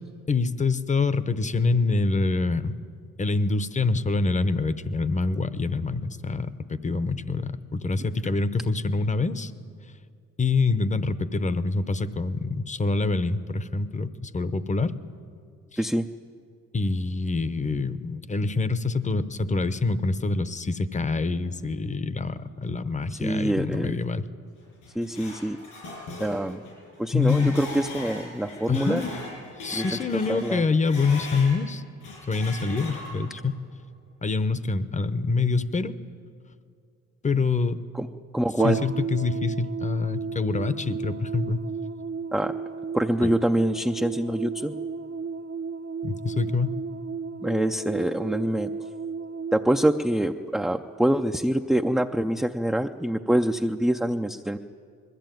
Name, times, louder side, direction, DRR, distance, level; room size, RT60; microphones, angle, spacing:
voice 1, 0.3-2.7 3.2-6.5 6.8-9.5 10.4-14.9 16.7-24.2 27.1-27.6 28.7-29.2 29.6-31.8 32.3-33.6 34.2-36.0 37.2-37.8 38.6-41.6 43.2-43.3 46.0-46.8, left 3 dB, 25° left, 14 dB, 0.8 m, -25 dB
voice 2, 23.1-23.9 25.0-25.6 26.2-26.6 27.0-29.0 29.7-29.9 30.3-30.6 37.9-38.1 38.3-38.8 42.3-42.5 42.9-44.7 47.4-48.7 49.5-54.6, right 1 dB, ahead, 4 dB, 0.5 m, -25 dB
sound 1, 24.6-31.6 32.0-33.4, left 1 dB, 85° left, 6.9 m, -39 dB
sound 2, 38.6-51.1, right 5 dB, 50° right, 0.7 m, -34 dB
20.5 x 14.0 x 9.1 m, 2.3 s
cardioid pair, 90°, 30 cm